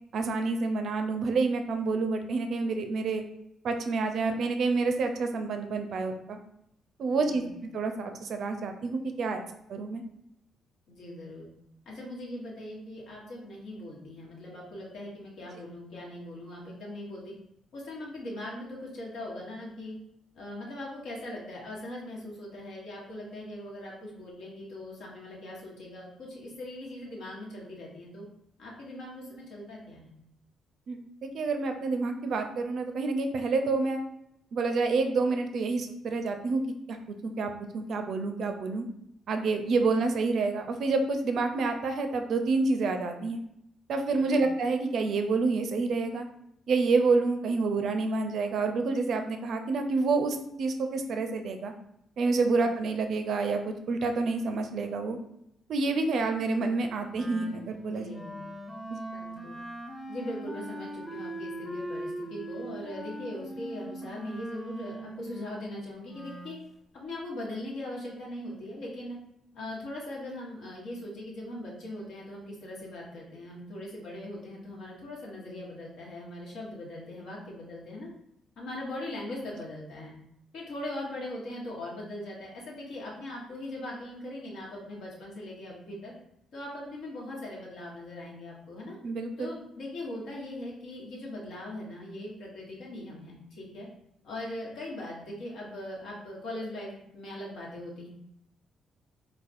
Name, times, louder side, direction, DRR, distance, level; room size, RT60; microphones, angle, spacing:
voice 1, 0.1-3.2 3.6-6.4 7.0-7.4 7.7-9.4 9.7-10.0 30.9-34.0 34.5-36.6 36.9-38.8 39.3-43.4 43.9-46.3 46.7-51.7 52.2-55.2 55.7-58.1 58.9-59.0 89.0-89.5, right 3 dB, 65° right, 6 dB, 0.4 m, -28 dB
voice 2, 7.1-7.5 10.9-11.5 11.8-17.3 17.7-19.9 20.3-28.2 28.6-30.1 44.1-44.5 47.5-47.6 57.9-58.5 59.1-59.6 60.1-66.6 66.9-69.2 69.5-78.1 78.6-80.1 80.5-86.1 86.5-88.9 89.4-93.9 94.2-98.1, left 1 dB, 75° left, -4 dB, 1.1 m, -40 dB
Wind instrument woodwind instrument, 57.1-66.6, right 1 dB, 10° left, 0.5 m, -41 dB
4.1 x 2.2 x 2.5 m, 0.78 s
cardioid pair, 90°, 0 cm